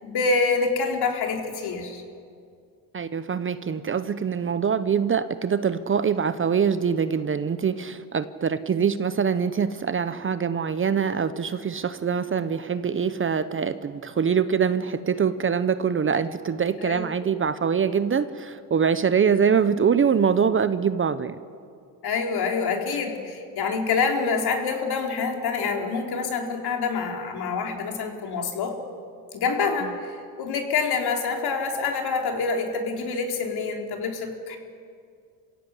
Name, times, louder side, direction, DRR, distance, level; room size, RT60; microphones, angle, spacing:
voice 1, 0.0-2.0 16.8-17.0 22.0-28.8 29.3-34.6, left 4 dB, 60° left, 2 dB, 3.8 m, -26 dB
voice 2, 2.9-21.4, right 7 dB, 30° right, 12 dB, 0.8 m, -24 dB
27.5 x 16.5 x 8.3 m, 2.3 s
cardioid pair, 105°, 44 cm